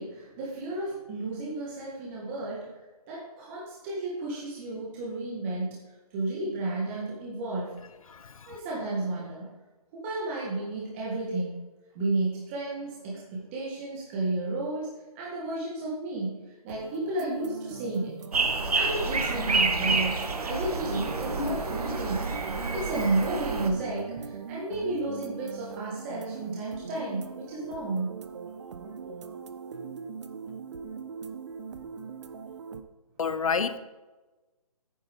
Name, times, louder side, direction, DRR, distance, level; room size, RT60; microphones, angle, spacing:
voice 1, 0.0-2.8 3.1-5.8 6.1-7.7 8.5-9.5 9.9-11.6 11.9-18.1 18.7-22.3 22.7-28.2 28.8-29.1, right 2 dB, 20° right, -5 dB, 1.8 m, -32 dB
voice 2, 8.1-8.6 21.4-22.1 22.6-22.7 33.2-33.8, left 5 dB, 65° left, 12 dB, 0.9 m, -31 dB
sound 1, 16.7-32.8, right 6 dB, 50° right, 0.8 m, -41 dB
sound 2, 18.3-23.7, right 3 dB, 80° right, 1.6 m, -28 dB
9.6 x 9.5 x 3.7 m, 1.2 s
hypercardioid pair, 160°, 19 cm